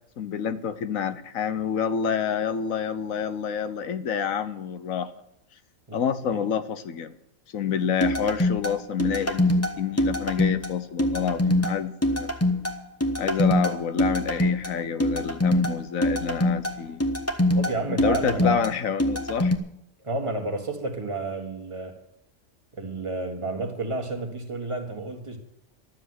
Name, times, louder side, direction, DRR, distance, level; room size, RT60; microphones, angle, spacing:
voice 1, 0.2-5.1 5.9-7.1 7.5-12.3 13.2-17.0 17.9-19.5, left 7 dB, 85° left, 1.3 m, -28 dB
sound 1, 8.0-19.6, left 1 dB, 10° left, 1.0 m, -24 dB
voice 2, 17.5-18.7 20.0-22.0 22.7-25.4, right 3 dB, 25° right, 1.9 m, -31 dB
12.5 x 7.6 x 9.6 m
omnidirectional pair, 1.4 m